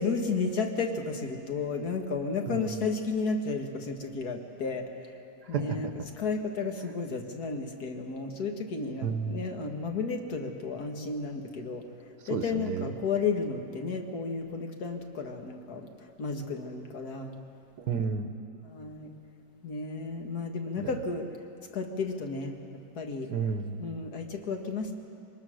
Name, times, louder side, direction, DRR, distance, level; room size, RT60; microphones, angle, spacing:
voice 1, 0.0-5.1 5.5-5.9 6.2-11.8 12.3-15.9 16.2-17.4 18.7-19.1 19.6-21.3 21.7-23.3 23.8-24.9, left 4 dB, 65° left, 4 dB, 2.0 m, -33 dB
voice 2, 2.4-2.8 5.4-5.9 9.0-9.4 12.3-12.9 17.8-18.4 20.8-21.0 23.3-23.9, right 6 dB, 75° right, 8 dB, 1.5 m, -32 dB
23.5 x 19.5 x 6.4 m, 2.7 s
omnidirectional pair, 1.8 m